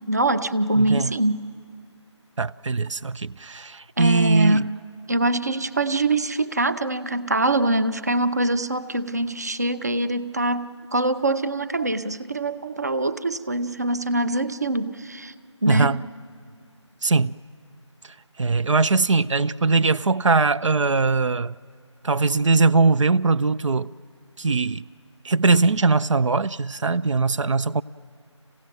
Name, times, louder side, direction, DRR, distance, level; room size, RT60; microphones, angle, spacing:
voice 1, 0.1-1.4 4.0-4.7 5.1-15.3 15.6-16.0, right 2 dB, 35° right, 0.6 m, -24 dB
voice 2, 0.8-1.1 2.4-4.6 15.7-16.0 17.0-17.3 18.4-21.5 22.0-23.9 24.4-24.8 25.2-27.8, right 3 dB, 80° right, 0.5 m, -21 dB
27.0 x 16.5 x 9.2 m
figure-of-eight pair, 175°, 16 cm